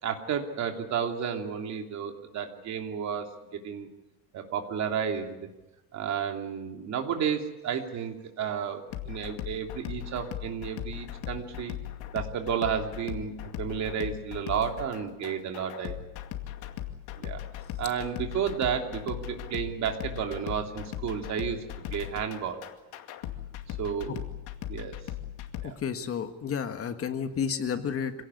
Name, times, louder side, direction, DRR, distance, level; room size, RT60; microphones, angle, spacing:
voice 1, 0.0-3.9 4.3-5.4 5.9-11.8 12.1-16.0 17.2-17.4 17.8-21.6 21.9-22.6 23.7-24.3 24.7-25.0 25.6-25.8, right 7 dB, 40° right, 4 dB, 3.0 m, -32 dB
sound 1, 8.9-25.7, left 12 dB, 60° left, 2.4 m, -39 dB
voice 2, 25.6-28.1, left 7 dB, 30° left, 8 dB, 1.6 m, -31 dB
26.0 x 17.5 x 9.8 m, 1.0 s
cardioid pair, 170°, 43 cm